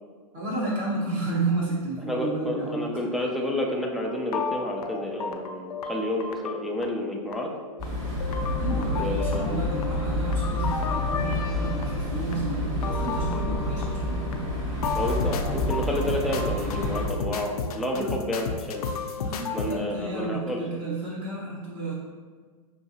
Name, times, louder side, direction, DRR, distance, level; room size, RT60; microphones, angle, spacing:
voice 1, 0.3-3.0 8.6-14.2 17.9-18.1 19.2-21.9, right 2 dB, 40° right, -6 dB, 1.3 m, -31 dB
voice 2, 2.1-7.5 9.0-9.7 14.9-18.9 19.5-20.8, left 1 dB, ahead, -2 dB, 0.4 m, -30 dB
sound 1, 4.0-19.8, left 5 dB, 85° left, 0.5 m, -34 dB
sound 2, 7.8-17.1, left 1 dB, 25° right, 1.4 m, -29 dB
5.7 x 2.8 x 2.8 m, 1.5 s
hypercardioid pair, 130°, 19 cm